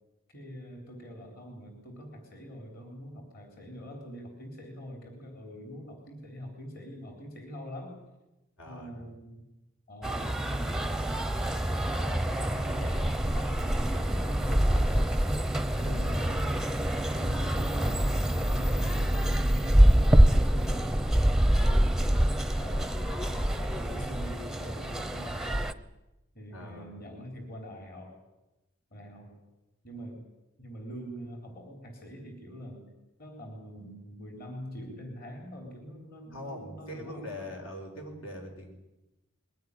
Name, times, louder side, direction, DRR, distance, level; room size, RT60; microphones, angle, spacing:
voice 1, 0.3-8.0 8.7-9.4 9.9-15.2 15.8-16.6 17.2-21.0 21.9-25.7 26.3-28.2 28.9-29.3 29.8-30.2 30.6-32.9 33.2-37.6, equal, 45° left, 3 dB, 4.0 m, -44 dB
voice 2, 8.6-9.0 15.7-16.0 21.5-21.9 26.5-27.0 36.3-38.7, left 1 dB, 75° left, 3 dB, 4.9 m, -42 dB
sound 1, 10.0-25.7, right 1 dB, ahead, 0.7 m, -25 dB
21.5 x 17.0 x 9.9 m, 0.98 s
head